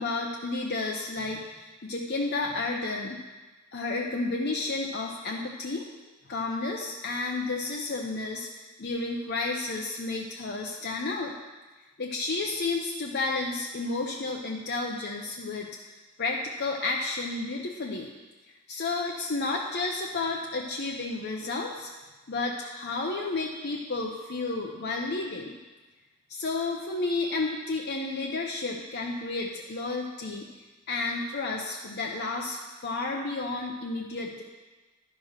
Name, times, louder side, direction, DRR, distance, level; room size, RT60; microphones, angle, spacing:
voice 1, 0.0-3.2 3.7-5.9 6.3-11.3 12.0-15.7 16.2-18.1 18.7-21.9 22.3-25.6 26.3-30.5 30.9-34.4, left 3 dB, 55° left, -1 dB, 0.7 m, -31 dB
11.0 x 4.9 x 5.7 m, 1.2 s
head